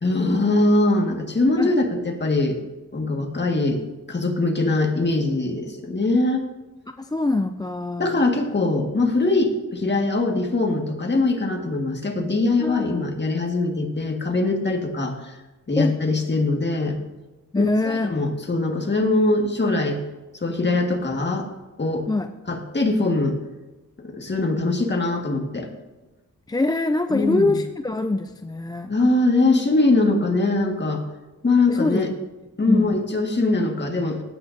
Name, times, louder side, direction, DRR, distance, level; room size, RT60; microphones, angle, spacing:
voice 1, 0.0-2.6 2.9-3.8 4.1-6.5 8.0-15.4 15.7-17.0 17.6-20.0 20.3-21.5 21.8-22.1 22.5-23.4 24.0-25.7 27.1-27.6 28.9-31.0 31.4-32.1 32.6-34.2, left 2 dB, 35° left, 2 dB, 1.8 m, -22 dB
voice 2, 7.0-8.2 12.6-13.0 15.8-16.0 17.5-18.2 22.1-22.3 26.5-28.9 31.7-32.2 32.7-33.0, left 2 dB, 15° left, 8 dB, 0.4 m, -24 dB
16.5 x 8.8 x 2.7 m, 1.1 s
wide cardioid pair, 95°, 33 cm